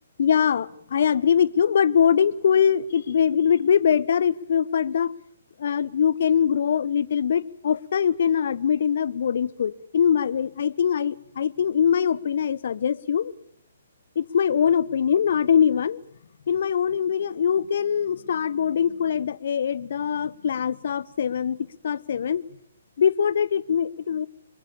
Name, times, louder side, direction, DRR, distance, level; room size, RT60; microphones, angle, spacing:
voice 1, 0.2-5.1 5.6-13.3 14.2-16.0 16.5-22.4 23.0-24.3, left 8 dB, 55° left, 0.9 m, -22 dB
25.5 x 22.5 x 7.1 m
figure-of-eight pair, 130°, 0 cm